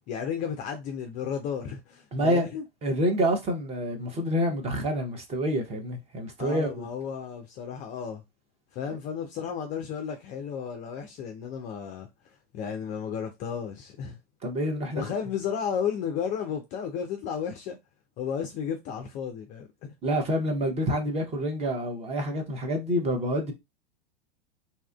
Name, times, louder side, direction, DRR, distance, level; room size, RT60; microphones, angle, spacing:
voice 1, 0.1-2.6 6.4-8.2 8.7-12.1 12.5-14.2 14.9-17.8 18.2-19.9, left 7 dB, 25° left, 0.4 m, -33 dB
voice 2, 2.1-2.4 2.8-6.7 14.4-15.0 20.0-23.5, equal, 20° right, 0.7 m, -27 dB
2.7 x 2.3 x 2.2 m
hypercardioid pair, 100°, 31 cm